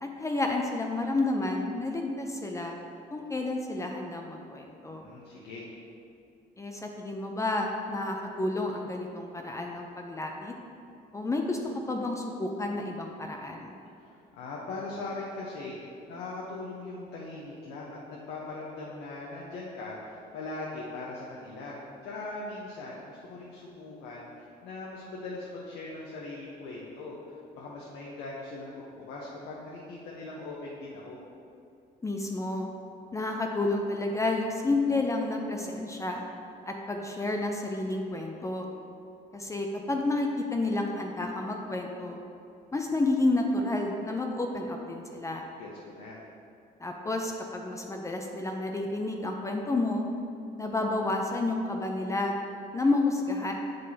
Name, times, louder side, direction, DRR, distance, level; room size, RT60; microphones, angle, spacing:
voice 1, 0.0-2.8 3.1-5.1 6.6-10.5 11.1-11.6 11.9-13.8 32.0-32.7 33.1-36.2 36.7-38.7 39.3-42.2 42.7-45.5 46.8-50.1 50.6-52.4 52.7-53.5, left 2 dB, 20° left, 2 dB, 0.5 m, -30 dB
voice 2, 4.9-5.6 14.0-31.2 45.3-46.2, left 2 dB, 80° left, -4 dB, 0.9 m, -40 dB
7.5 x 5.3 x 2.8 m, 2.6 s
cardioid pair, 110°, 17 cm